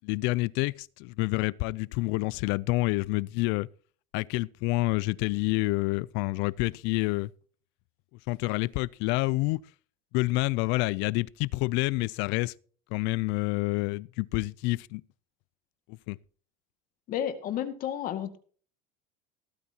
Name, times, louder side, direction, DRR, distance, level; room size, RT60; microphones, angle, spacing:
voice 1, 0.0-3.7 4.1-7.3 8.3-9.6 10.1-12.5 12.9-15.0 15.9-16.2, left 22 dB, 60° left, 0.5 m, -28 dB
voice 2, 17.1-18.4, left 10 dB, 45° left, 2.1 m, -32 dB
17.0 x 13.5 x 2.9 m
cardioid pair, 150°, 20 cm